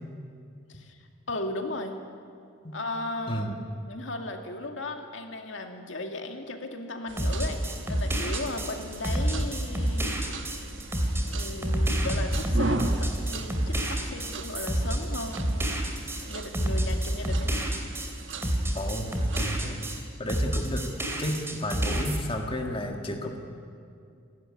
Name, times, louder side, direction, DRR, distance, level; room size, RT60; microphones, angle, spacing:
voice 1, 1.3-1.9 2.7-3.5 3.9-7.6 7.9-10.2 11.2-15.7 16.3-17.6, left 2 dB, 70° left, 4 dB, 2.3 m, -36 dB
voice 2, 3.3-3.6 12.0-12.1 18.7-19.8 20.2-20.9 21.2-23.4, equal, 25° left, 2 dB, 1.9 m, -32 dB
sound 1, 7.1-20.0, right 3 dB, 70° right, 1.3 m, -38 dB
sound 2, 7.2-20.0 20.3-22.2, right 1 dB, 15° right, 2.7 m, -28 dB
29.0 x 12.5 x 9.9 m, 2.4 s
head